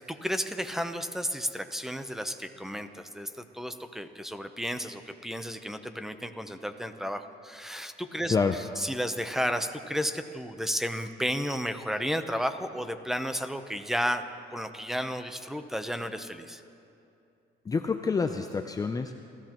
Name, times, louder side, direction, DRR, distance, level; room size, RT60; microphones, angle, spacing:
voice 1, 0.1-8.3 8.8-14.2 14.5-16.6, equal, ahead, 8 dB, 0.8 m, -32 dB
voice 2, 17.7-19.2, left 4 dB, 20° left, 6 dB, 0.5 m, -27 dB
29.5 x 14.0 x 3.0 m, 2.6 s
cardioid pair, 110°, 17 cm